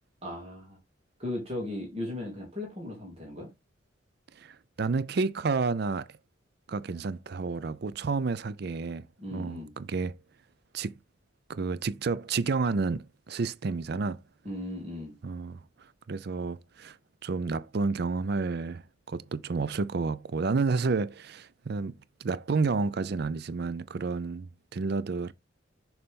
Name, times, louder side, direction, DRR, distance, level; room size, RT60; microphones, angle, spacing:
voice 1, 0.2-0.8 1.2-3.5 9.2-9.7 14.4-15.2, left 1 dB, 30° right, 2.5 m, -37 dB
voice 2, 4.4-6.1 6.7-9.1 9.3-10.2 10.7-11.0 11.5-14.2 15.2-15.6 16.1-17.0 17.2-25.3, right 4 dB, 55° right, 0.4 m, -30 dB
6.8 x 4.1 x 3.7 m
head